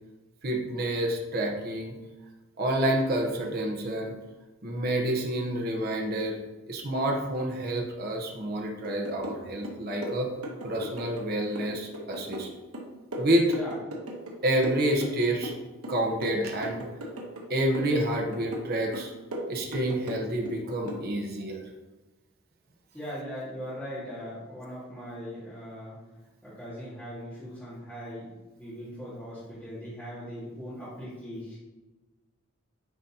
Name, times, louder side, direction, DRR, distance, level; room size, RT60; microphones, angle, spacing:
voice 1, 0.4-1.9 2.6-4.1 4.6-6.4 6.7-10.3 10.6-12.5 13.2-13.5 14.4-15.5 15.9-16.8 17.5-19.1 19.5-21.6, right 1 dB, 45° right, 1 dB, 0.9 m, -28 dB
sound 1, 8.8-9.4 9.6-11.3 11.6-14.4 14.6-15.6 15.8-17.5 17.7-18.7 18.9-20.6 20.9-21.1, right 1 dB, 85° right, 1.2 m, -37 dB
voice 2, 22.9-26.0 26.4-28.3 28.6-31.6, equal, 5° left, -12 dB, 1.8 m, -39 dB
9.2 x 3.9 x 2.8 m, 1.2 s
head